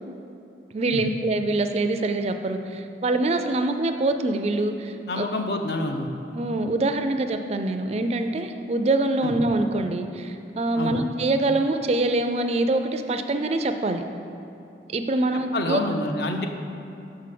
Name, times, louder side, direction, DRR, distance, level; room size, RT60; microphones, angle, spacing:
voice 1, 0.7-5.2 6.3-14.0 14.9-15.8, right 2 dB, 35° right, 7 dB, 0.4 m, -24 dB
voice 2, 5.1-6.1 9.2-9.3 10.8-11.0 15.5-16.5, left 2 dB, 60° left, 4 dB, 0.6 m, -27 dB
6.4 x 4.7 x 5.9 m, 2.9 s
head